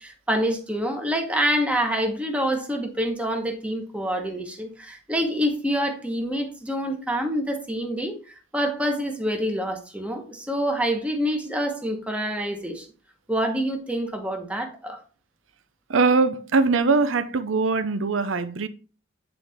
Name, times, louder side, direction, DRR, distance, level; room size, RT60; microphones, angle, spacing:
voice 1, 0.0-12.9 13.3-15.0, equal, 5° right, 1.1 m, -26 dB
voice 2, 15.9-18.7, right 4 dB, 80° right, 0.7 m, -21 dB
9.1 x 4.0 x 3.5 m
head